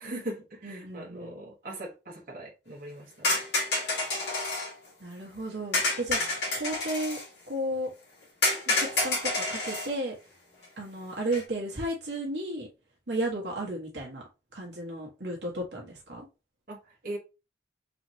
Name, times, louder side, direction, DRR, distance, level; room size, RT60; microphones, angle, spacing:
voice 1, 0.0-3.4 8.7-8.8 16.7-16.8 17.0-17.2, right 1 dB, 50° right, 1.4 m, -40 dB
voice 2, 0.6-1.3 5.0-7.2 7.5-7.9 8.8-10.2 10.8-12.7 13.1-14.2 14.5-16.3, right 1 dB, 65° right, 1.3 m, -34 dB
sound 1, 3.2-4.7 5.7-7.2 8.4-9.9 11.3-11.4, left 2 dB, 65° left, 2.0 m, -28 dB
4.1 x 3.1 x 2.8 m
head